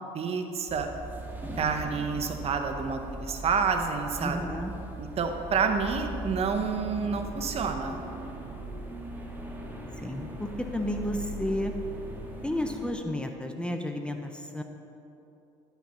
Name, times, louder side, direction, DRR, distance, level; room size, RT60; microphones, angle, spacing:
voice 1, 0.1-0.9 1.6-4.5 5.0-8.0, right 5 dB, 45° right, 6 dB, 1.0 m, -29 dB
sound 1, 0.7-12.9, right 1 dB, 15° right, 1.7 m, -40 dB
voice 2, 4.2-4.7 10.0-11.7 12.4-14.6, left 1 dB, 5° left, 5 dB, 0.8 m, -32 dB
11.5 x 5.8 x 5.6 m, 2.8 s
supercardioid pair, 85°, 15 cm